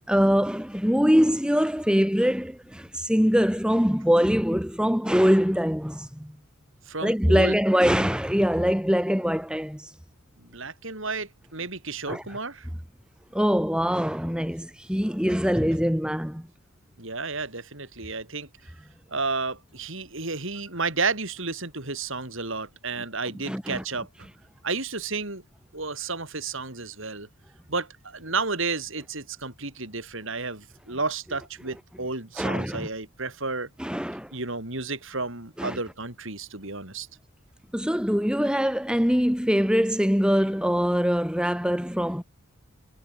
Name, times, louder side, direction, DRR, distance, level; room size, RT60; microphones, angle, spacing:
voice 1, 0.1-6.3 7.0-9.9 12.1-12.2 13.3-16.5 23.5-23.8 32.4-32.9 33.8-34.3 35.6-35.8 37.7-42.2, equal, 5° right, 1.9 m, -23 dB
voice 2, 6.9-7.5 10.4-12.7 17.0-18.5 19.1-24.3 24.6-25.4 25.7-27.3 27.7-33.7 34.3-37.1, right 4 dB, 60° right, 4.2 m, -32 dB
head